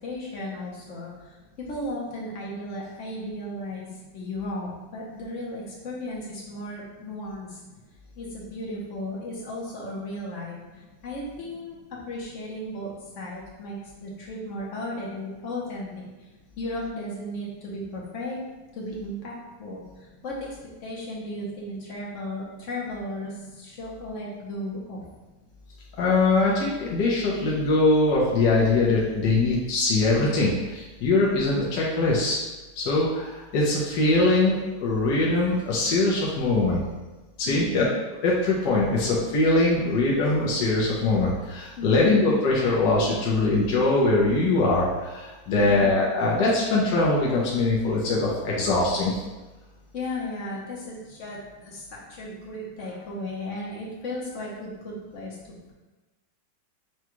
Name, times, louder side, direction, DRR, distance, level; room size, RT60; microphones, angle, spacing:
voice 1, 0.0-7.6 8.2-15.9 16.6-18.4 18.7-19.8 20.2-20.5 20.8-25.0 37.5-37.9 41.8-42.2 49.9-55.4, left 1 dB, 55° left, -4 dB, 1.0 m, -35 dB
voice 2, 26.0-32.4 32.8-36.8 37.4-37.8 38.2-49.2, left 2 dB, 70° left, -5 dB, 1.3 m, -22 dB
6.1 x 2.3 x 3.0 m, 1.1 s
omnidirectional pair, 2.0 m